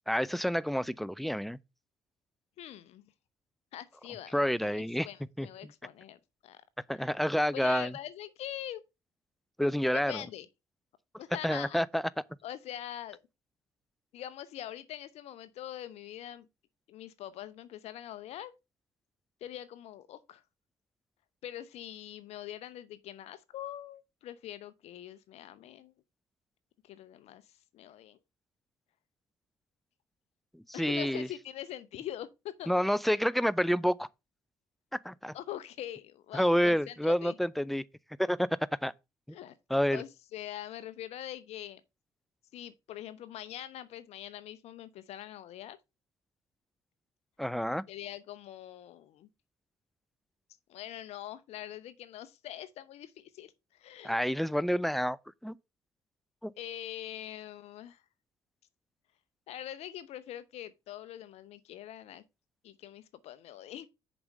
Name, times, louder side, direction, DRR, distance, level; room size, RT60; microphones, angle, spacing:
voice 1, 0.1-1.6 4.3-5.1 5.4-5.5 6.9-7.9 9.6-10.2 11.4-12.0 30.5-31.3 32.7-34.1 35.0-35.3 36.3-37.8 38.2-38.5 38.8-38.9 39.7-40.0 47.4-47.8 54.0-55.2 55.4-55.6 56.4-56.5, equal, ahead, 0.6 m, -28 dB
voice 2, 2.6-3.1 3.7-6.6 7.0-7.1 7.5-8.8 10.1-10.5 11.2-11.8 12.4-13.2 14.1-16.5 16.9-18.5 19.4-20.4 21.4-25.9 26.8-27.4 27.7-28.2 30.7-32.7 35.3-37.4 39.3-39.5 39.9-41.8 42.5-45.8 47.9-49.3 50.7-54.1 56.6-58.0 59.5-62.2 62.6-63.9, left 12 dB, 60° left, 0.7 m, -43 dB
6.9 x 5.1 x 5.4 m
hypercardioid pair, 45°, 12 cm